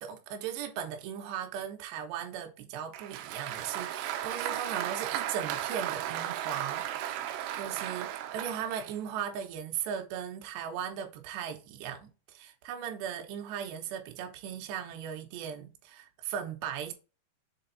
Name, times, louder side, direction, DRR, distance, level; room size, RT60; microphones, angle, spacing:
voice 1, 0.0-7.1 7.6-16.9, right 8 dB, 70° right, 3.0 m, -38 dB
Applause, 2.9-8.9, right 12 dB, 90° right, 3.2 m, -35 dB
7.1 x 3.8 x 4.0 m
omnidirectional pair, 5.6 m